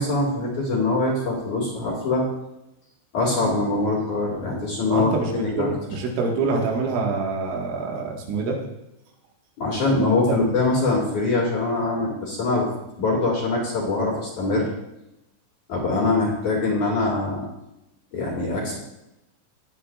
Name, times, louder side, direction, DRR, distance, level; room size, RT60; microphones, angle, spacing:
voice 1, 0.0-2.2 3.1-5.7 9.6-12.7 13.0-14.7 15.7-17.4 18.1-18.8, left 2 dB, 50° left, -3 dB, 2.8 m, -23 dB
voice 2, 4.9-8.6, right 4 dB, 80° right, 0 dB, 3.9 m, -26 dB
18.0 x 8.9 x 2.4 m, 0.90 s
omnidirectional pair, 5.4 m